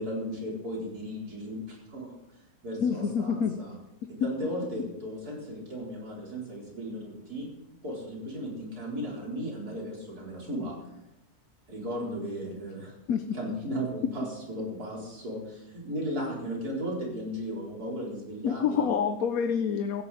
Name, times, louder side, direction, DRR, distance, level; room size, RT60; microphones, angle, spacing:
voice 1, 0.0-2.2 2.6-3.7 4.2-7.5 7.8-10.8 11.7-12.9 13.3-18.9, equal, 85° right, -3 dB, 4.7 m, -35 dB
voice 2, 2.8-3.6 13.1-13.3 18.4-20.0, left 7 dB, 70° left, 8 dB, 1.2 m, -27 dB
16.5 x 15.0 x 4.2 m, 0.91 s
omnidirectional pair, 1.6 m